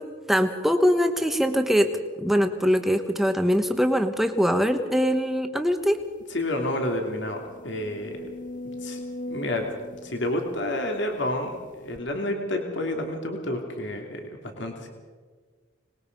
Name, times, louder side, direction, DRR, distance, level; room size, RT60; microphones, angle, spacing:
voice 1, 0.0-1.9 2.2-6.0, equal, ahead, 7 dB, 1.2 m, -22 dB
sound 1, 5.9-6.0 6.4-6.5 7.0-11.3 11.9-12.0, left 1 dB, 40° left, 1.0 m, -40 dB
voice 2, 6.3-8.2 8.8-9.0 9.3-9.7 10.0-14.9, left 1 dB, 60° left, 3 dB, 2.8 m, -29 dB
25.5 x 20.5 x 5.3 m, 1.5 s
head